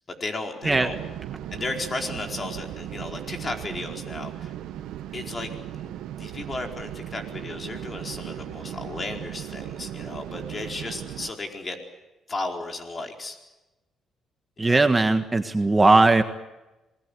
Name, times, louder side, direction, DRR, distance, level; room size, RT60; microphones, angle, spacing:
voice 1, 0.1-0.9 1.5-4.5 5.1-11.8 12.3-13.4 14.6-14.9, left 2 dB, 35° left, 3 dB, 4.5 m, -34 dB
sound 1, 0.6-11.3, right 12 dB, 85° right, 1.2 m, -37 dB
voice 2, 14.6-16.2, right 2 dB, 20° right, 8 dB, 1.5 m, -18 dB
26.5 x 20.0 x 8.4 m, 1.0 s
cardioid pair, 90°, 0 cm